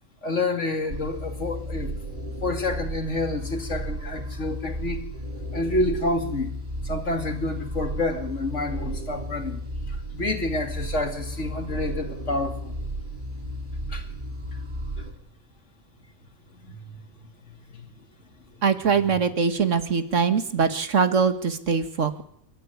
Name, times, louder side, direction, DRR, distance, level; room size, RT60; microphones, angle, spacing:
voice 1, 0.2-1.9 2.4-5.1 5.5-6.6 6.8-12.8 13.9-14.1 16.5-16.8 17.7-17.9, left 2 dB, 70° left, 5 dB, 3.1 m, -28 dB
sound 1, 0.9-15.1, equal, 40° right, 3.4 m, -34 dB
voice 2, 18.6-22.2, right 5 dB, 75° right, 9 dB, 1.9 m, -22 dB
30.0 x 13.5 x 9.6 m, 0.71 s
omnidirectional pair, 1.3 m